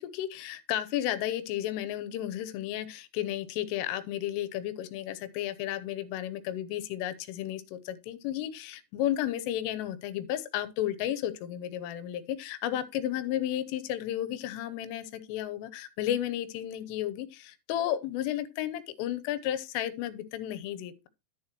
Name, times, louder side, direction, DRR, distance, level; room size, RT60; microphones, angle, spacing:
voice 1, 0.0-21.1, left 12 dB, 90° left, 3.4 m, -33 dB
10.5 x 9.7 x 3.0 m
omnidirectional pair, 5.7 m